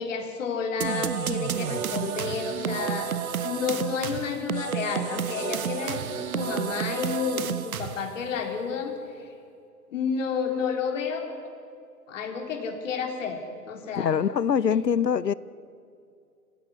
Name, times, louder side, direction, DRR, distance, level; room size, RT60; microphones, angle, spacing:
voice 1, 0.0-3.1 3.4-9.3 9.9-11.3 12.1-13.4 13.7-14.2 14.7-14.8, left 6 dB, 50° left, 4 dB, 3.7 m, -31 dB
sound 1, 0.8-8.2, right 8 dB, 60° right, 1.3 m, -31 dB
voice 2, 14.0-15.3, left 7 dB, 80° left, 20 dB, 0.8 m, -23 dB
25.5 x 16.0 x 9.7 m, 2.5 s
figure-of-eight pair, 130°, 49 cm